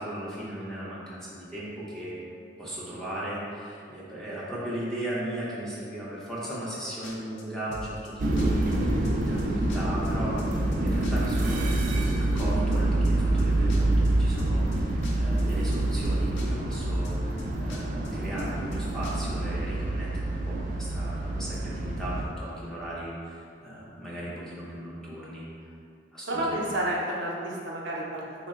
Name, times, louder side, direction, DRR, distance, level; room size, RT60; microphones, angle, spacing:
voice 1, 0.0-2.2 2.6-11.7 12.3-25.5 26.1-26.7, right 1 dB, 5° left, -8 dB, 0.6 m, -37 dB
sound 1, 7.0-7.4 7.7-8.1 8.4-8.5 8.7-9.4 9.7-10.1 10.4-10.8 11.0-12.8 13.0-13.4 13.7-14.8 15.0-15.4 15.7-16.1 16.4-16.5 16.7-17.4 17.7-18.1 18.4-18.8 19.0-19.1, left 1 dB, 85° left, 0.5 m, -40 dB
sound 2, 8.2-22.3, right 1 dB, 45° right, 0.3 m, -26 dB
voice 2, 26.3-28.5, right 1 dB, 85° right, -4 dB, 0.6 m, -30 dB
3.7 x 2.1 x 3.6 m, 2.4 s
head